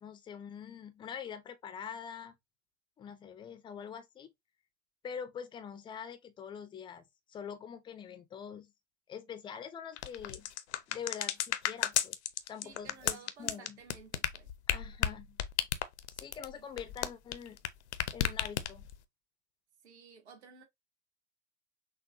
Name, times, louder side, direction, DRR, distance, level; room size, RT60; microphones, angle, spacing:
voice 1, 0.0-2.3 3.0-4.3 5.0-8.7 9.1-10.5 10.9-12.2 12.5-13.8 14.7-15.4 16.2-17.6 18.1-18.9, left 7 dB, 15° left, 0.4 m, -44 dB
sound 1, 10.0-17.7 17.9-19.0, left 11 dB, 65° left, 0.6 m, -33 dB
voice 2, 12.6-14.5 16.5-16.6 19.8-20.6, right 6 dB, 60° right, 1.6 m, -54 dB
6.0 x 2.3 x 2.5 m
figure-of-eight pair, 95°, 37 cm